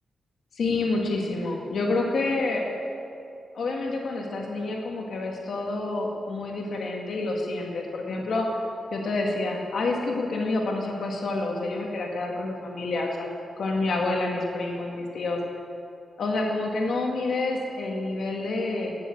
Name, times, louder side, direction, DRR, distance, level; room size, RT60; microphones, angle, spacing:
voice 1, 0.5-2.6 3.5-8.5 8.9-13.3 13.6-15.4 16.2-19.0, left 2 dB, 65° left, 0 dB, 2.0 m, -28 dB
12.5 x 8.6 x 8.6 m, 2.6 s
cardioid pair, 100°, 0 cm